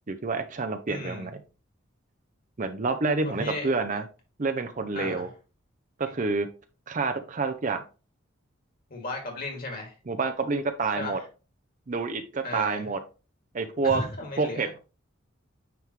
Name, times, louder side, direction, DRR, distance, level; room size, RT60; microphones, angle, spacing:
voice 1, 0.1-1.4 2.6-4.0 4.4-5.3 6.0-6.5 6.9-7.8 10.1-11.2 11.9-13.0 13.5-14.0 14.4-14.8, right 4 dB, 40° right, 0.5 m, -28 dB
voice 2, 0.9-1.3 3.2-3.7 4.9-5.3 8.9-9.9 11.0-11.2 12.4-12.9 13.8-14.6, left 2 dB, 45° left, 2.1 m, -35 dB
9.2 x 3.5 x 3.1 m
head